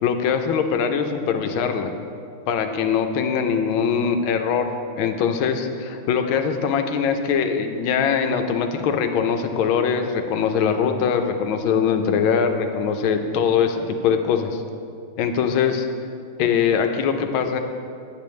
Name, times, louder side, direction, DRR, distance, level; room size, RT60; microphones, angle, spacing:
voice 1, 0.0-1.9 2.5-4.7 5.0-14.6 15.2-15.9 16.4-17.6, left 6 dB, 75° left, 6 dB, 1.3 m, -22 dB
8.5 x 8.2 x 3.1 m, 2.4 s
omnidirectional pair, 2.3 m